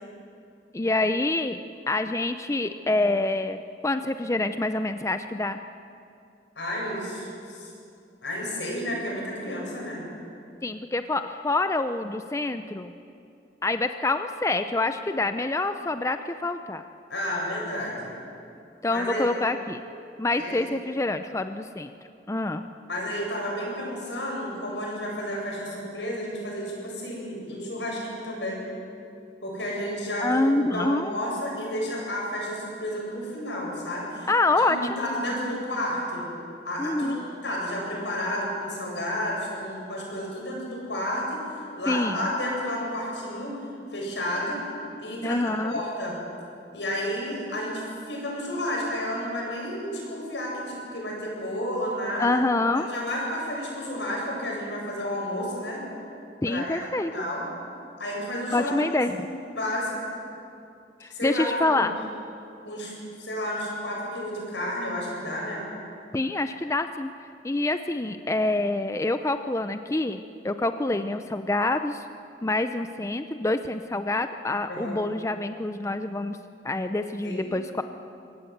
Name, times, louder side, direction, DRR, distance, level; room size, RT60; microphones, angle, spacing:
voice 1, 0.7-1.6 1.9-5.6 10.6-12.9 13.6-16.8 18.8-19.8 20.2-21.9 22.3-22.7 30.2-31.1 34.3-35.1 36.8-37.2 41.9-42.3 45.2-45.7 52.2-52.9 56.4-57.1 58.5-59.3 61.0-62.0 66.1-67.1 67.4-72.1 72.4-76.4 76.6-77.8, left 2 dB, 15° left, 9 dB, 0.5 m, -26 dB
voice 2, 6.6-7.7 8.2-10.0 17.1-18.1 18.9-19.2 20.4-20.7 22.8-28.7 29.4-34.3 34.7-36.2 36.6-41.5 41.8-43.5 43.9-44.6 45.0-46.1 46.7-52.4 52.7-55.8 56.5-56.9 57.1-57.4 58.0-58.7 59.2-59.9 61.1-61.8 62.6-65.6 74.7-75.0 77.2-77.5, equal, 85° left, -2 dB, 8.0 m, -31 dB
24.0 x 17.5 x 8.0 m, 2.6 s
head